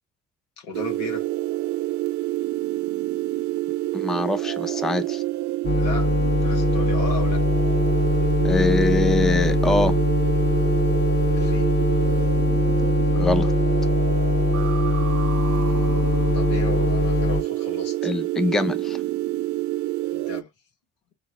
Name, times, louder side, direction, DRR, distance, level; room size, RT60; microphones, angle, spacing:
voice 1, 0.6-1.3 5.8-7.4 11.3-11.7 15.4-18.1 20.1-20.5, left 4 dB, 85° left, 1.5 m, -36 dB
sound 1, 0.7-20.4, right 16 dB, 50° right, 0.5 m, -27 dB
voice 2, 3.9-5.2 8.4-10.0 13.1-13.5 18.0-19.0, left 2 dB, ahead, 0.5 m, -23 dB
sound 2, 5.6-17.4, left 2 dB, 30° left, 1.0 m, -22 dB
3.8 x 2.8 x 3.6 m
hypercardioid pair, 60°, 38 cm